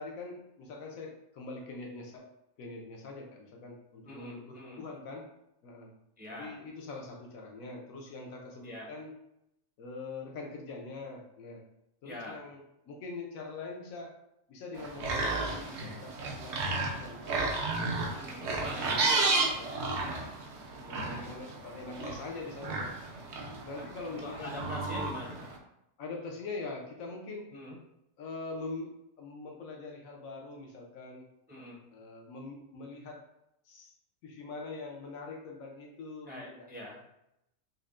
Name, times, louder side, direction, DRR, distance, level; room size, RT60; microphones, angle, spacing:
voice 1, 0.0-2.3 2.6-5.3 5.6-5.9 6.3-9.1 9.8-11.6 12.0-14.2 14.5-17.6 18.4-20.2 20.8-22.9 23.6-24.5 26.0-27.5 28.2-31.3 31.9-33.3 33.6-33.9 34.2-36.7, left 3 dB, 85° left, 0 dB, 1.1 m, -43 dB
voice 2, 4.0-4.8 6.2-6.6 8.6-8.9 12.0-12.4 18.2-18.6 23.7-23.9 24.2-25.5 27.5-27.8 31.5-31.8 36.3-37.0, left 1 dB, 10° right, -4 dB, 0.5 m, -44 dB
sound 1, 14.7-25.6, right 3 dB, 65° right, 0.9 m, -33 dB
5.4 x 2.1 x 2.4 m, 0.83 s
omnidirectional pair, 1.4 m